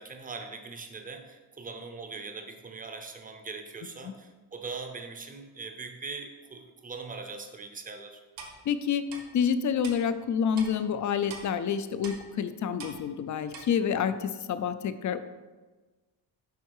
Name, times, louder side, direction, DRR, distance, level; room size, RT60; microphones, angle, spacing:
voice 1, 0.0-8.2, right 4 dB, 20° right, 6 dB, 0.7 m, -41 dB
Clock, 8.4-8.5 9.1-9.2 9.8-10.0 10.6-10.7 11.3-11.4 12.0-12.2 12.8-13.0 13.5-13.6, right 4 dB, 65° right, 1.4 m, -42 dB
voice 2, 8.7-9.1 9.3-15.2, left 7 dB, 45° left, 12 dB, 0.4 m, -28 dB
8.2 x 5.4 x 4.7 m, 1.3 s
cardioid pair, 165°, 45 cm